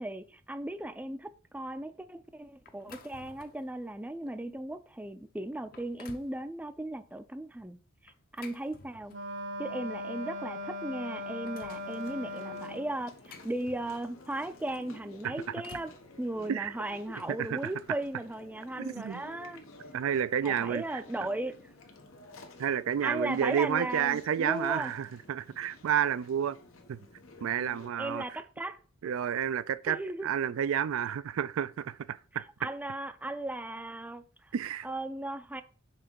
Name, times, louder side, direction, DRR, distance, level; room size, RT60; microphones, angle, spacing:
voice 1, 0.0-9.1 9.6-15.9 16.2-19.6 20.4-21.7 23.0-24.9 28.0-28.8 29.9-30.3 32.6-34.5 34.8-35.6, right 1 dB, 5° right, 0.4 m, -37 dB
sound 1, 2.7-3.7 4.3-4.4 5.1-5.2 5.6-6.4 8.1-9.4 10.5-10.6 10.9-11.9 12.8-14.2 15.2-16.0, left 4 dB, 45° left, 0.7 m, -53 dB
Wind instrument woodwind instrument, 9.1-13.0, left 1 dB, 65° right, 0.9 m, -39 dB
Chewing mastication, 11.8-27.9, left 2 dB, 90° left, 1.2 m, -52 dB
voice 2, 17.4-17.7 18.8-19.2 19.9-20.8 22.6-26.6 26.9-27.0 27.4-28.2 29.0-32.4 34.5-34.9, right 8 dB, 85° right, 0.4 m, -30 dB
5.7 x 3.7 x 5.3 m
head